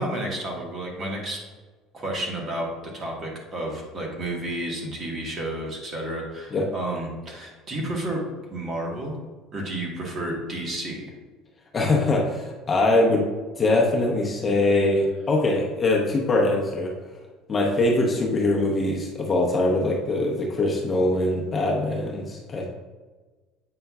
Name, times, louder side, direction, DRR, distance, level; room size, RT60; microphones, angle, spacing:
voice 1, 0.0-1.4 1.9-8.2 8.5-9.2 9.5-11.0, right 1 dB, 30° right, -1 dB, 1.3 m, -31 dB
voice 2, 11.7-13.2 13.6-16.9 17.5-22.7, left 2 dB, 20° left, -1 dB, 0.8 m, -22 dB
7.7 x 5.2 x 2.3 m, 1.3 s
cardioid pair, 145°, 0 cm